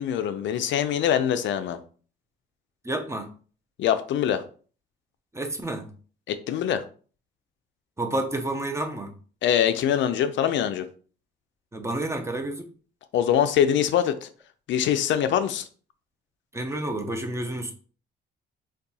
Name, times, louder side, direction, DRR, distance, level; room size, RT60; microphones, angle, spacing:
voice 1, 0.0-1.8 3.8-4.4 6.3-6.8 9.4-10.9 13.1-14.3 14.7-15.7, left 9 dB, 70° left, 0.4 m, -23 dB
voice 2, 2.8-3.3 5.3-5.9 8.0-9.1 11.7-12.6 16.5-17.7, right 1 dB, 15° right, 0.6 m, -29 dB
2.6 x 2.3 x 3.9 m
cardioid pair, 90°, 20 cm